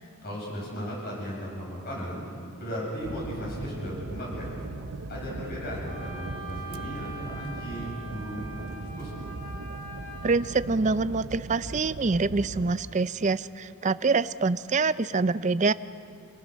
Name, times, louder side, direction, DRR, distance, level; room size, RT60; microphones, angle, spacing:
voice 1, 0.2-2.2 2.6-4.5 5.1-9.1, equal, 45° left, -3 dB, 7.7 m, -36 dB
sound 1, 3.0-12.8, right 3 dB, 75° right, 0.7 m, -39 dB
Wind instrument woodwind instrument, 5.9-10.5, right 1 dB, 15° left, 7.6 m, -43 dB
voice 2, 10.2-15.7, right 4 dB, 35° right, 15 dB, 0.5 m, -25 dB
28.5 x 19.0 x 6.4 m, 2.4 s
head